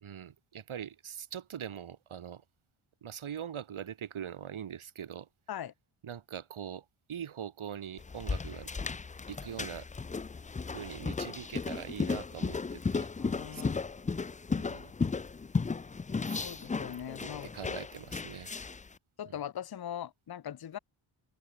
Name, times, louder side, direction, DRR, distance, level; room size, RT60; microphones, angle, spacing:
voice 1, 0.0-2.4 3.0-5.3 6.0-8.7 9.3-9.9 10.7-13.1 13.5-13.6 14.6-14.9 16.3-16.6 17.2-18.5 19.3-19.4, right 9 dB, 75° right, 1.9 m, -42 dB
sound 1, 8.0-18.9, left 4 dB, 15° left, 0.4 m, -35 dB
voice 2, 13.2-13.8 16.4-17.5 19.2-20.8, left 10 dB, 50° left, 0.8 m, -40 dB
cardioid pair, 85°, 49 cm